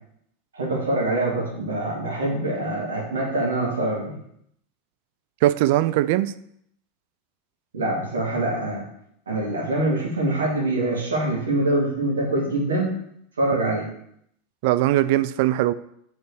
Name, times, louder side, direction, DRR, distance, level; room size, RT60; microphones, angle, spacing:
voice 1, 0.5-4.2 7.7-8.8 9.3-12.9 13.4-13.9, right 2 dB, 75° right, -4 dB, 1.9 m, -24 dB
voice 2, 5.4-6.3 14.6-15.7, right 14 dB, 55° right, 13 dB, 0.4 m, -20 dB
5.4 x 4.4 x 6.2 m, 0.71 s
figure-of-eight pair, 85°, 0 cm